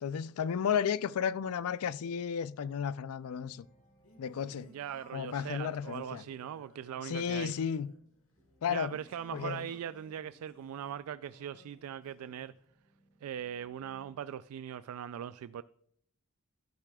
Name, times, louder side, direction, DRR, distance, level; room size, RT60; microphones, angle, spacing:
voice 1, 0.0-3.7 4.2-4.7 5.1-6.2 7.0-7.9 8.6-8.9 9.3-9.7, left 7 dB, 85° left, 0.4 m, -33 dB
sound 1, 0.9-14.2, right 1 dB, 40° left, 3.0 m, -68 dB
Singing, 3.5-12.6, left 1 dB, 65° left, 1.6 m, -60 dB
voice 2, 4.5-7.5 8.7-12.5 13.2-15.6, right 9 dB, 85° right, 0.3 m, -40 dB
12.0 x 9.6 x 2.3 m
head